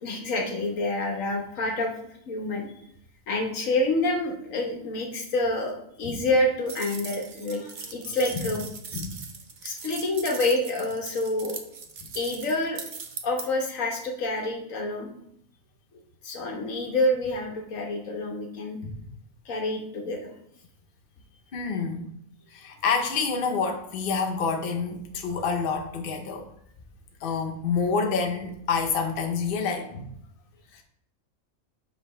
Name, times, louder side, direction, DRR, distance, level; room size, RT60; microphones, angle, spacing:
voice 1, 0.0-1.9 2.3-2.7 3.3-8.7 9.6-11.6 12.1-12.8 13.2-15.1 16.2-18.8 19.4-20.3, left 2 dB, 70° left, 2 dB, 1.4 m, -27 dB
sound 1, 6.7-13.4, right 5 dB, 50° right, 0.6 m, -39 dB
voice 2, 21.5-22.1 22.5-26.5 27.2-30.0 30.7-30.8, left 5 dB, 50° left, 2 dB, 0.7 m, -28 dB
5.0 x 3.8 x 5.4 m, 0.71 s
omnidirectional pair, 1.5 m